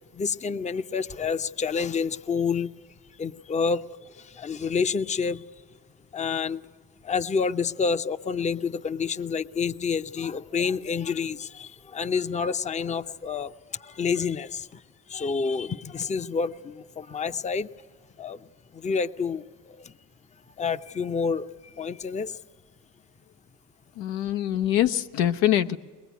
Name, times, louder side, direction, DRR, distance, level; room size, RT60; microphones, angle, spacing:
voice 1, 0.1-2.7 3.1-5.4 6.1-6.6 7.0-17.7 18.2-19.9 20.6-22.4, left 5 dB, 20° left, 0.6 m, -29 dB
voice 2, 24.0-25.8, left 12 dB, 85° left, 0.9 m, -24 dB
22.5 x 20.5 x 9.3 m
supercardioid pair, 90°, 35 cm